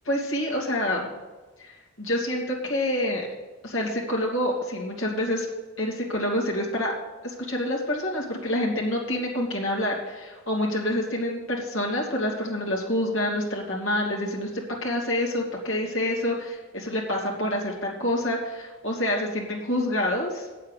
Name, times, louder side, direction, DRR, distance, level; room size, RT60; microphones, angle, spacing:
voice 1, 0.0-1.1 1.6-3.3 3.6-5.5 5.8-6.9 7.2-14.5 14.8-20.5, left 1 dB, 65° left, -3 dB, 2.8 m, -27 dB
8.5 x 7.7 x 8.3 m, 1.3 s
head